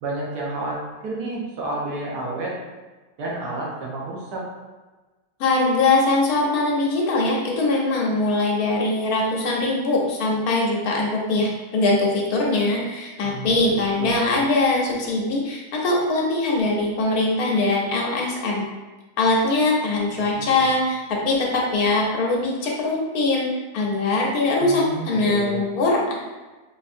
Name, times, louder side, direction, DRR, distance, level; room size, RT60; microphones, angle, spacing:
voice 1, 0.0-2.5 3.2-4.4 13.2-14.2 20.1-20.7 24.6-25.6, right 2 dB, 85° right, -4 dB, 1.5 m, -31 dB
voice 2, 5.4-18.7 19.2-23.5 23.7-26.1, left 2 dB, 70° left, -2 dB, 1.1 m, -22 dB
4.5 x 2.6 x 2.6 m, 1.2 s
omnidirectional pair, 1.7 m